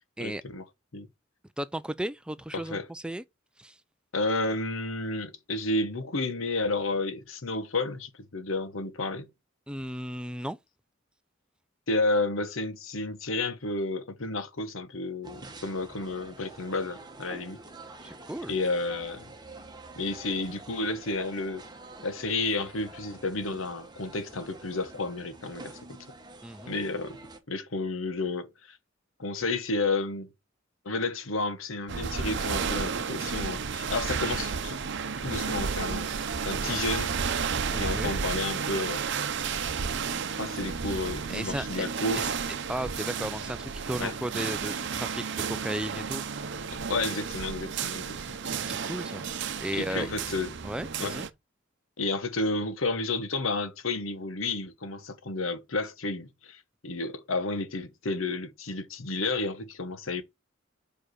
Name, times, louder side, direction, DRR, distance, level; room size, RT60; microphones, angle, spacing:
voice 1, 0.2-0.6 0.9-1.1 2.5-2.9 4.1-9.3 11.9-17.6 18.5-19.3 20.0-21.6 22.0-26.0 26.7-27.2 27.5-28.8 29.2-30.3 30.8-34.8 35.2-36.1 36.4-37.1 37.8-39.1 40.4-42.3 44.0-44.1 46.7-48.2 49.7-50.5 51.0-51.2 52.0-60.2, left 2 dB, 80° left, 1.1 m, -31 dB
voice 2, 1.6-3.2 3.6-3.8 9.7-10.6 18.0-18.5 26.4-26.7 37.7-38.1 41.3-41.8 42.2-42.3 42.7-46.2 48.6-49.2 49.6-50.1 50.6-51.3, right 1 dB, 5° right, 0.3 m, -35 dB
sound 1, 15.2-27.4, right 2 dB, 20° right, 1.2 m, -47 dB
sound 2, 31.9-51.3, right 6 dB, 60° right, 0.7 m, -32 dB
4.9 x 4.9 x 6.2 m
head